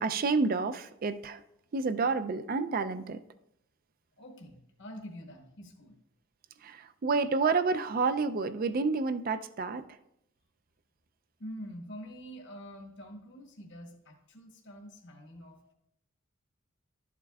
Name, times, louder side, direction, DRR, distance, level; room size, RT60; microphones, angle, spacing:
voice 1, 0.0-1.4 1.7-3.2 6.6-9.8, right 4 dB, 45° right, 11 dB, 0.4 m, -29 dB
voice 2, 4.2-6.0 11.4-15.7, equal, 60° left, 1 dB, 1.1 m, -46 dB
12.0 x 7.3 x 2.3 m, 0.80 s
head